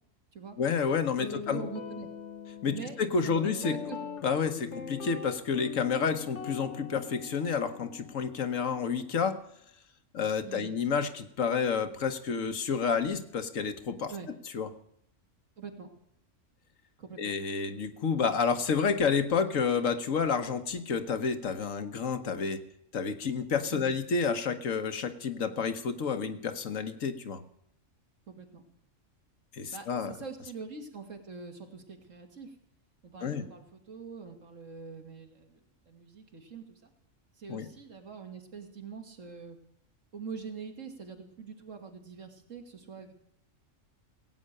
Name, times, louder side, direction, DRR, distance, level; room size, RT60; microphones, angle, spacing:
voice 1, 0.6-1.6 2.6-3.7 4.2-9.4 10.1-14.1 14.5-14.7 17.2-22.6 22.9-27.4 29.5-30.1 33.2-33.4 37.5-37.7, left 6 dB, 85° left, 8 dB, 1.5 m, -30 dB
Guitar, 1.2-9.4, left 7 dB, 65° left, 1.3 m, -42 dB
voice 2, 1.2-2.1 2.7-3.0 3.2-4.0 10.4-10.7 14.1-14.3 15.6-15.9 17.0-17.3 23.7-24.0 28.3-28.6 29.7-32.5 33.0-36.8 37.4-39.6 40.1-43.1, right 5 dB, 75° right, 4 dB, 2.3 m, -44 dB
16.5 x 8.7 x 6.6 m, 0.75 s
omnidirectional pair, 1.3 m